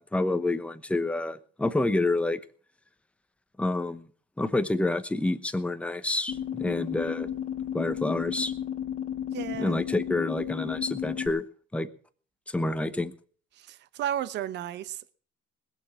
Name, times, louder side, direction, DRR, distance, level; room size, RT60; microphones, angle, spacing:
voice 1, 0.0-2.4 3.6-4.0 4.4-7.3 7.7-8.5 9.6-11.4 11.7-11.9 12.5-13.1, left 2 dB, 5° left, 0.9 m, -28 dB
sound 1, 6.3-11.3, left 10 dB, 35° left, 2.8 m, -33 dB
voice 2, 9.3-9.8 13.5-15.1, right 11 dB, 60° right, 0.9 m, -33 dB
20.5 x 6.9 x 7.4 m
cardioid pair, 140°, 20 cm